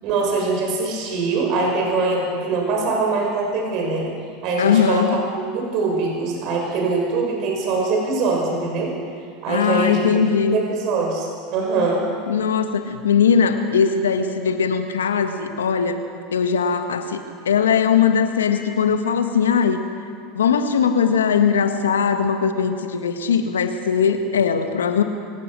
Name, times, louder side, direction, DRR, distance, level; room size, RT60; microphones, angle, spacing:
voice 1, 0.0-4.1 4.4-8.9 9.4-10.2 10.5-12.1, right 3 dB, 55° right, 0 dB, 6.3 m, -23 dB
voice 2, 4.6-5.2 9.5-10.6 12.3-16.0 16.3-19.8 20.3-25.0, left 6 dB, 80° left, 7 dB, 1.7 m, -20 dB
24.0 x 17.5 x 6.4 m, 2.4 s
hypercardioid pair, 85°, 0 cm